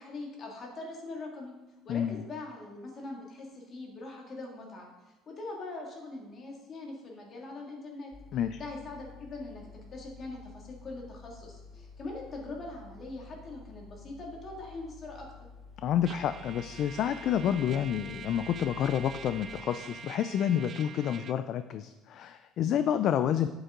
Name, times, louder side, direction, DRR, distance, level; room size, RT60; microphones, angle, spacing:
voice 1, 0.0-1.5 1.9-4.9 5.3-8.1 8.6-15.3, left 2 dB, 35° left, -1 dB, 2.4 m, -42 dB
voice 2, 1.9-2.2 8.3-8.6 15.8-23.5, left 9 dB, 50° left, 11 dB, 0.4 m, -29 dB
sound 1, 8.1-19.6, left 4 dB, 15° left, 0.8 m, -51 dB
Trumpet, 16.1-21.4, right 7 dB, 35° right, 0.4 m, -45 dB
11.0 x 8.0 x 3.9 m, 1.1 s
cardioid pair, 150°, 0 cm